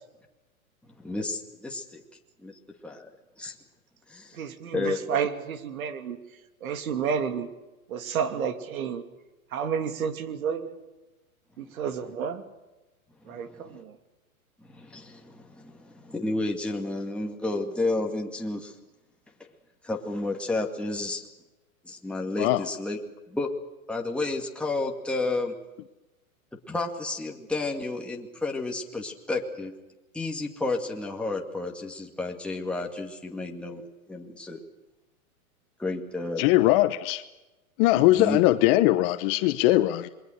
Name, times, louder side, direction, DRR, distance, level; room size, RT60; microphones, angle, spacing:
voice 1, 1.0-2.0 2.4-2.5 2.8-3.1 3.4-3.5 4.1-4.4 4.7-5.2 13.3-13.8 14.7-18.7 19.8-21.2 21.8-23.0 23.3-23.5 23.9-25.5 26.7-29.7 30.1-33.8 34.1-34.6 35.8-36.4 38.2-38.4, left 2 dB, ahead, 0 dB, 2.2 m, -31 dB
voice 2, 4.3-6.2 6.6-7.5 7.9-9.0 9.5-10.8 11.6-12.4 13.3-13.9, right 7 dB, 70° right, 8 dB, 2.8 m, -30 dB
voice 3, 36.4-37.2 37.8-40.1, left 16 dB, 40° left, 11 dB, 1.0 m, -21 dB
27.5 x 22.0 x 6.5 m, 1.1 s
hypercardioid pair, 125°, 43 cm